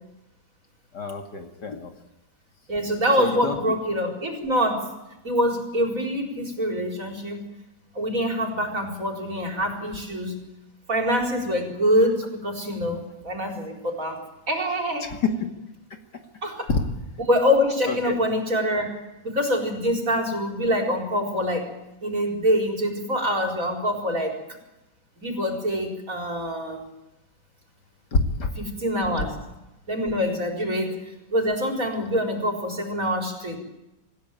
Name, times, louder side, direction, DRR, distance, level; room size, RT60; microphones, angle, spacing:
voice 1, 0.9-1.9 3.2-3.6 15.0-15.5 16.7-16.8 17.9-18.1 28.1-28.5, left 3 dB, 60° left, 6 dB, 2.9 m, -26 dB
voice 2, 2.7-4.9 5.2-7.4 7.9-10.4 10.9-14.2 14.5-15.1 16.4-16.7 17.3-21.7 22.0-24.4 25.2-26.9 28.6-29.3 29.9-33.6, equal, 45° right, 3 dB, 5.0 m, -25 dB
26.0 x 16.0 x 9.1 m, 0.95 s
omnidirectional pair, 2.0 m